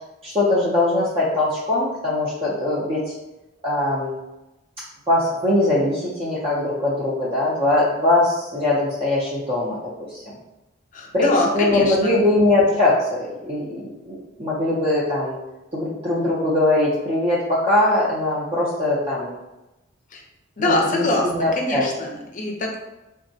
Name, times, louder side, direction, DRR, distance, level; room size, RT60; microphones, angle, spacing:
voice 1, 0.2-3.0 3.6-4.1 5.1-9.8 10.1-10.2 11.1-15.4 15.7-19.4 20.6-21.9, left 2 dB, 30° right, -7 dB, 0.5 m, -21 dB
voice 2, 10.9-12.2 20.1-20.2 20.6-22.8, left 1 dB, 40° left, 1 dB, 0.5 m, -23 dB
3.4 x 2.0 x 2.6 m, 0.99 s
head